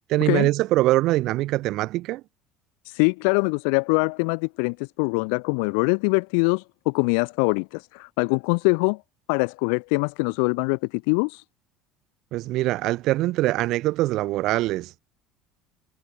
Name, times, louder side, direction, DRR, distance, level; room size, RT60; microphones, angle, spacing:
voice 1, 0.1-2.2 12.3-15.0, right 17 dB, 65° right, 1.1 m, -23 dB
voice 2, 2.8-9.0 9.3-11.4, left 40 dB or more, 80° left, 0.6 m, -23 dB
supercardioid pair, 100°, 0 cm